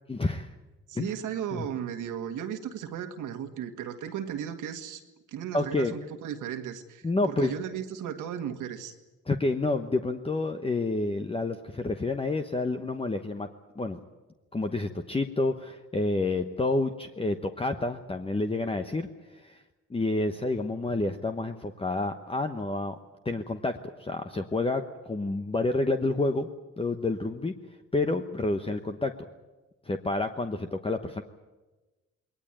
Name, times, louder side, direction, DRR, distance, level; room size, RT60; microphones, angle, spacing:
voice 1, 0.1-0.5 0.9-1.1 1.5-1.7 5.5-5.9 7.0-7.5 9.3-13.5 13.8-14.0 14.5-19.1 19.3-19.6 19.9-23.0 23.2-26.5 26.8-27.5 27.9-29.1 29.9-31.2, left 2 dB, 20° left, 6 dB, 1.1 m, -29 dB
voice 2, 0.9-5.0 5.3-8.9, right 9 dB, 85° right, 6 dB, 1.9 m, -35 dB
21.0 x 19.0 x 9.1 m, 1.2 s
cardioid pair, 90°, 30 cm